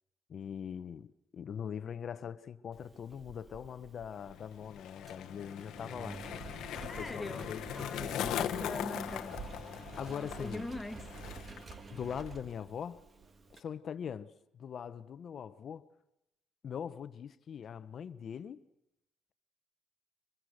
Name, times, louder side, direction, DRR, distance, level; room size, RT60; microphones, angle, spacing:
voice 1, 0.3-6.2 7.0-7.6 8.1-8.4 10.0-10.7 11.9-13.0 13.5-15.9 16.6-18.6, left 8 dB, 50° left, 1.0 m, -42 dB
Engine, 2.7-13.6, right 4 dB, 30° right, 1.5 m, -49 dB
Skateboard, 4.2-11.8 12.0-12.5, left 11 dB, 75° left, 1.1 m, -40 dB
voice 2, 6.9-9.4 10.0-11.0, left 2 dB, 10° left, 1.2 m, -42 dB
24.5 x 22.0 x 6.5 m
cardioid pair, 120°, 0 cm